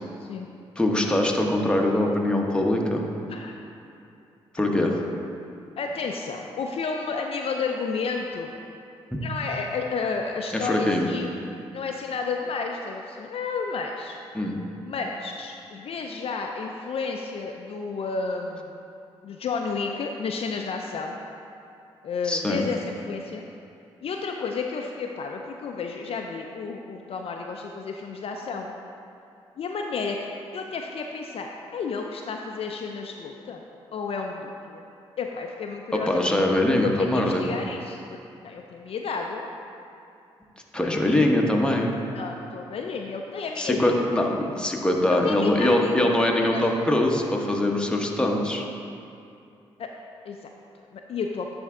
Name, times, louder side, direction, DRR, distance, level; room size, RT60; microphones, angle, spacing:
voice 1, 0.8-3.0 4.5-5.0 10.6-11.1 14.3-14.6 22.2-22.6 36.1-37.4 40.7-41.9 43.6-48.6, left 1 dB, 10° left, 0 dB, 1.0 m, -23 dB
voice 2, 5.8-8.5 9.2-11.3 11.7-14.2 14.8-18.8 19.2-21.2 22.0-23.4 24.0-28.7 29.6-30.2 30.5-33.6 33.9-34.9 35.2-38.2 38.4-39.4 40.8-41.3 42.1-43.9 45.1-46.1 46.4-46.7 49.8-49.9 50.2-51.5, left 4 dB, 55° left, 2 dB, 0.4 m, -32 dB
10.0 x 3.4 x 3.6 m, 2.6 s
supercardioid pair, 50°, 12 cm